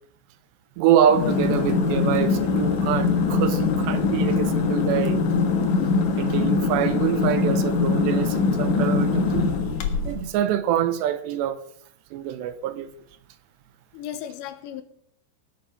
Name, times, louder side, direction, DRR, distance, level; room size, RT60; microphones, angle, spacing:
voice 1, 0.8-5.2 6.2-9.5 10.1-11.6 12.1-12.9, right 10 dB, 80° right, 2.9 m, -25 dB
sound 1, 1.1-10.3, left 4 dB, 55° left, 2.3 m, -22 dB
voice 2, 5.7-6.1 13.9-14.8, left 11 dB, 80° left, 3.3 m, -36 dB
19.0 x 8.2 x 5.7 m
omnidirectional pair, 5.2 m